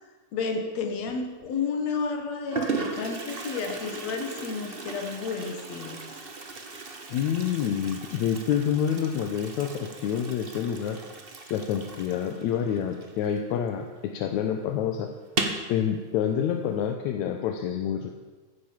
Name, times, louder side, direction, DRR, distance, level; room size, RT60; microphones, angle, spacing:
voice 1, 0.3-6.0, left 5 dB, 65° left, 4 dB, 2.8 m, -31 dB
Toilet flush, 1.0-1.5 2.2-2.3 2.5-13.8 14.1-14.2 14.5-14.6 15.2-15.7, right 3 dB, 75° right, 0.5 m, -36 dB
voice 2, 7.1-11.0 11.5-15.1 15.7-18.1, left 8 dB, 80° left, 5 dB, 2.2 m, -27 dB
15.0 x 10.0 x 7.2 m, 1.4 s
omnidirectional pair, 3.3 m